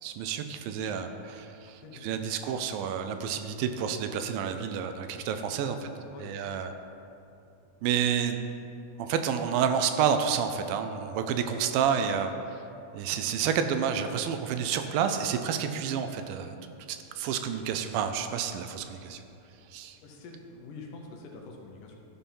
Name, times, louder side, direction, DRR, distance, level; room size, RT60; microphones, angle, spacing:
voice 1, 0.0-5.8 6.2-6.7 7.8-8.5 9.0-12.3 12.9-16.6 16.9-19.2 19.7-20.0, right 7 dB, 85° right, 7 dB, 2.2 m, -29 dB
voice 2, 1.8-2.5 5.6-6.4 11.7-12.2 20.0-22.0, left 3 dB, 75° left, 0 dB, 2.2 m, -47 dB
12.5 x 4.3 x 5.4 m, 2.7 s
omnidirectional pair, 4.1 m